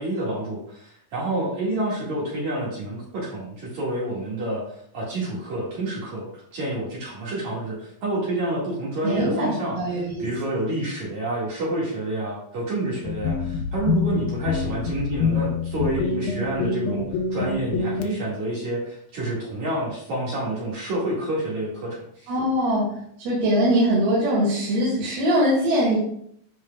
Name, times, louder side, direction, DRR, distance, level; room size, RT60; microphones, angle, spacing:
voice 1, 0.0-22.3, right 1 dB, 55° right, -5 dB, 2.9 m, -28 dB
voice 2, 9.0-10.3 22.3-22.9 23.2-26.0, equal, 90° right, -6 dB, 4.0 m, -22 dB
sound 1, 13.0-18.1, left 5 dB, 80° left, 2.4 m, -26 dB
13.0 x 4.7 x 2.3 m, 0.67 s
omnidirectional pair, 4.3 m